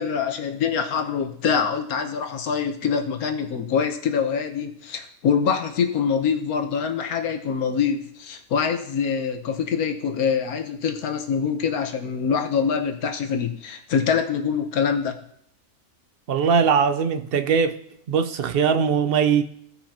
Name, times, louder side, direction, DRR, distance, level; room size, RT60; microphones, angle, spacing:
voice 1, 0.0-15.1, left 6 dB, 85° left, 1.4 m, -24 dB
voice 2, 16.3-17.8 18.1-19.4, right 6 dB, 55° right, 0.7 m, -20 dB
16.0 x 5.5 x 2.9 m
omnidirectional pair, 1.5 m